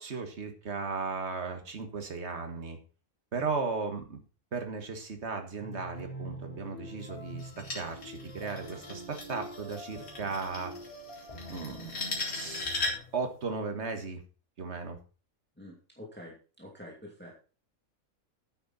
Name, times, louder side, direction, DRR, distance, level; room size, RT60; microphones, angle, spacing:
voice 1, 0.0-2.8 3.3-4.2 4.5-10.7 11.5-12.7 13.1-14.2 14.6-15.0, right 4 dB, 50° right, 5 dB, 1.9 m, -36 dB
sound 1, 5.6-13.0, right 1 dB, 25° left, 3.2 m, -45 dB
sound 2, 7.4-13.2, left 3 dB, 80° left, 3.3 m, -38 dB
voice 2, 15.6-17.3, left 1 dB, 5° left, -2 dB, 2.5 m, -47 dB
9.9 x 9.0 x 4.2 m, 0.36 s
omnidirectional pair, 1.5 m